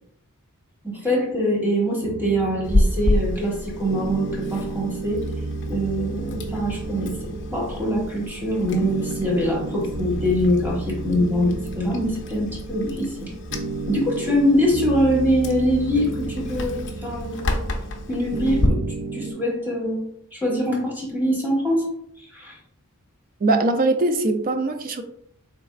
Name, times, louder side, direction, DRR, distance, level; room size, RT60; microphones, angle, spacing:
voice 1, 0.8-5.3 5.7-7.1 7.5-13.3 13.9-17.6 18.1-18.8 19.1-21.9 22.2-22.6, equal, 10° right, 1.3 m, -23 dB
sound 1, 2.0-19.3, right 3 dB, 80° right, 0.7 m, -33 dB
Chewing mastication, 2.6-18.7, left 1 dB, 55° left, 0.6 m, -30 dB
voice 2, 23.4-25.0, right 2 dB, 40° right, 0.4 m, -21 dB
4.0 x 3.4 x 2.4 m
head